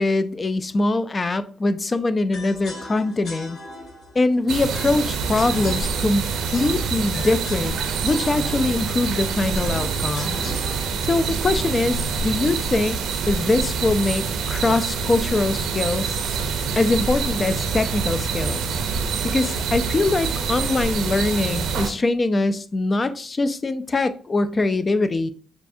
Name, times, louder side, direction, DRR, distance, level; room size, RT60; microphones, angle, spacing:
voice 1, 0.0-3.6 4.1-10.4 11.0-13.0 13.3-16.2 16.8-18.6 19.2-25.3, left 2 dB, 30° left, 0.4 m, -23 dB
sound 1, 2.3-12.4, left 2 dB, 65° left, 1.8 m, -40 dB
sound 2, 4.5-21.9, right 5 dB, 75° right, 0.6 m, -26 dB
6.7 x 2.4 x 2.6 m
cardioid pair, 90°, 0 cm